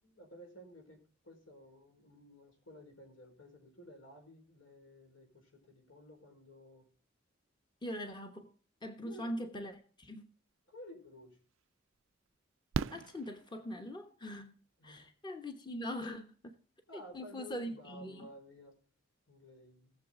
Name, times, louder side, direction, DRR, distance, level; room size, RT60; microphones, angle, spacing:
voice 1, 0.0-1.0 1.2-6.9 9.0-9.3 10.7-11.4 14.8-15.1 16.9-18.7 19.3-19.9, left 1 dB, 80° left, 3 dB, 4.7 m, -54 dB
voice 2, 7.8-8.5 8.8-10.3 12.9-14.6 14.8-16.6 16.9-18.3, equal, 25° left, 5 dB, 1.1 m, -42 dB
Fireworks, 11.1-11.2 12.7-14.1 15.8-15.9 16.1-16.2, right 6 dB, 75° right, 0.4 m, -38 dB
18.5 x 7.3 x 3.7 m, 0.41 s
head